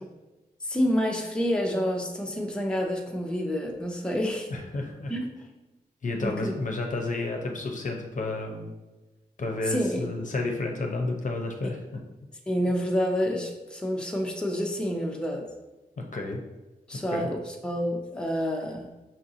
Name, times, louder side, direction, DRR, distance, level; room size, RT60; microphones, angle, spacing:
voice 1, 0.6-4.5 5.1-5.4 6.2-6.5 9.7-10.0 12.5-15.5 16.9-18.9, equal, 5° left, 0 dB, 0.6 m, -28 dB
voice 2, 4.5-5.1 6.0-8.7 9.4-12.0 16.0-16.4 17.1-17.3, left 2 dB, 55° left, 2 dB, 0.6 m, -31 dB
5.5 x 2.6 x 2.6 m, 1.1 s
cardioid pair, 60°, 16 cm